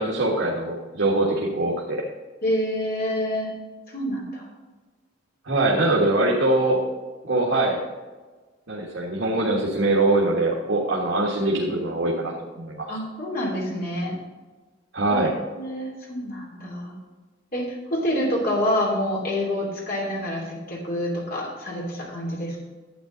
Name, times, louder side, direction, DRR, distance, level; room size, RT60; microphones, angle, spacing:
voice 1, 0.0-2.0 5.5-6.8 7.2-7.8 8.7-12.9 14.9-15.3, right 2 dB, 75° right, -3 dB, 1.6 m, -23 dB
voice 2, 2.4-3.5 3.9-4.5 12.9-14.1 15.5-16.9 17.5-22.6, left 1 dB, 50° left, -3 dB, 3.1 m, -27 dB
12.0 x 8.6 x 3.9 m, 1.3 s
head